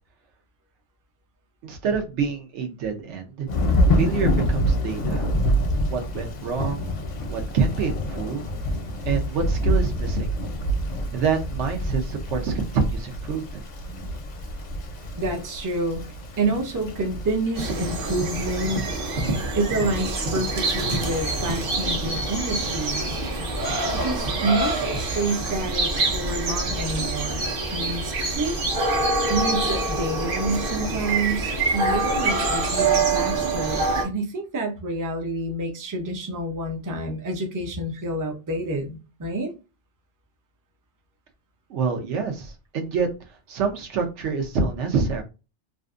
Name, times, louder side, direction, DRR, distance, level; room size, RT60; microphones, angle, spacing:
voice 1, 1.6-3.5 3.9-5.3 5.9-6.9 7.3-8.5 9.0-10.3 11.1-13.6 41.7-43.1 43.5-45.2, right 5 dB, 80° right, 4 dB, 1.0 m, -26 dB
Thunder / Rain, 3.5-19.1, equal, 50° left, 0.5 m, -27 dB
voice 2, 15.2-16.0 16.4-18.8 19.5-23.2 23.9-28.6 29.3-39.5, right 2 dB, 25° right, 2 dB, 0.4 m, -28 dB
sound 1, 17.6-34.0, right 2 dB, 55° right, 0.9 m, -25 dB
2.6 x 2.4 x 2.4 m, 0.30 s
omnidirectional pair, 1.2 m